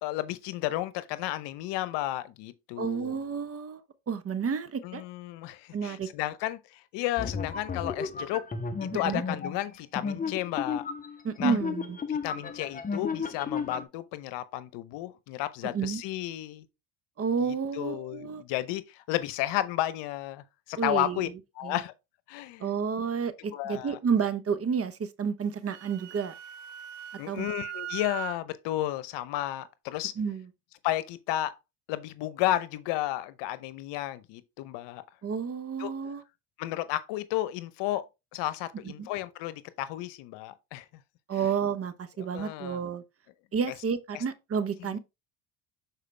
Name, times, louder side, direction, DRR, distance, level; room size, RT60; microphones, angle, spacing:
voice 1, 0.0-3.2 4.8-8.4 8.9-10.9 11.4-11.5 12.1-16.6 17.4-21.3 21.6-21.9 22.3-22.7 23.5-24.0 27.2-30.1 30.8-31.5 31.9-35.0 35.8-35.9 36.6-38.0 38.3-40.8 42.2-42.8 44.1-44.2, left 15 dB, 75° left, 0.8 m, -32 dB
voice 2, 2.8-3.8 4.1-5.0 5.7-6.1 8.9-9.2 11.2-12.0 15.6-16.0 17.2-18.4 20.8-21.3 21.6-21.8 22.6-26.3 27.3-27.5 30.2-30.5 35.2-36.2 39.0-39.1 41.3-43.0 43.5-45.0, right 6 dB, 35° right, 0.9 m, -30 dB
sound 1, 7.2-13.8, left 5 dB, 20° left, 0.8 m, -33 dB
Wind instrument woodwind instrument, 25.4-28.4, right 12 dB, 70° right, 1.2 m, -40 dB
6.6 x 4.5 x 3.3 m
supercardioid pair, 85°, 42 cm